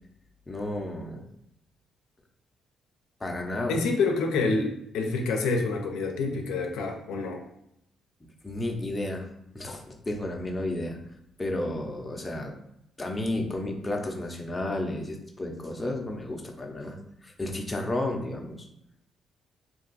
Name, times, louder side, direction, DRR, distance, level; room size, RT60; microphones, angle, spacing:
voice 1, 0.5-1.2 3.2-3.8 8.4-9.3 9.5-11.0 11.4-12.5 13.0-17.0 17.2-18.7, left 1 dB, 20° left, 1 dB, 0.6 m, -32 dB
voice 2, 3.7-7.4, left 3 dB, 90° left, 2 dB, 0.5 m, -27 dB
2.6 x 2.3 x 3.9 m, 0.78 s
cardioid pair, 90°, 0 cm